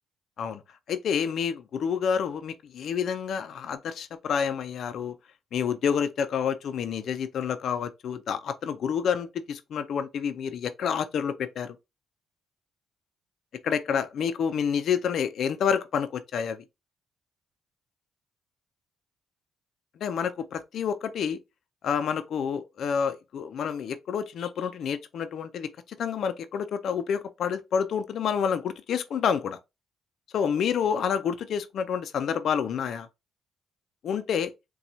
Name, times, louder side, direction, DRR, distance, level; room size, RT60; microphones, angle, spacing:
voice 1, 0.9-5.1 5.5-11.8 13.6-16.6 20.0-21.4 21.8-25.7 26.0-29.6 30.3-33.1 34.0-34.5, left 7 dB, 65° left, 0.4 m, -28 dB
4.2 x 2.2 x 2.6 m
cardioid pair, 90°, 0 cm